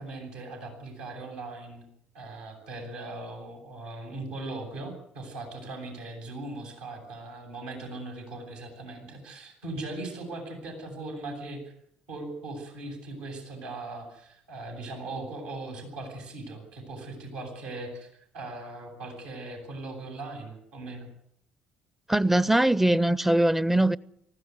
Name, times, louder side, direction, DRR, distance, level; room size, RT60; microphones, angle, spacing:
voice 1, 0.0-1.9 2.1-11.7 12.1-18.1 18.3-21.1, right 2 dB, 75° right, 7.9 m, -39 dB
voice 2, 22.1-24.0, right 1 dB, 5° right, 0.8 m, -21 dB
19.5 x 15.5 x 9.5 m
hypercardioid pair, 55°, 4 cm